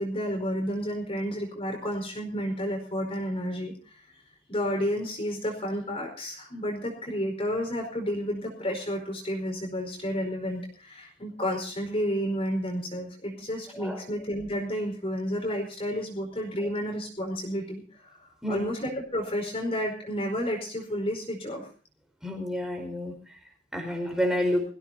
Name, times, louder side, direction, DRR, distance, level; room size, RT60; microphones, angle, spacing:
voice 1, 0.0-4.1 4.5-21.7, equal, 35° left, 1 dB, 4.9 m, -31 dB
voice 2, 22.2-23.1 23.7-24.6, left 1 dB, 5° right, 4 dB, 4.8 m, -29 dB
23.0 x 16.0 x 2.9 m, 0.38 s
head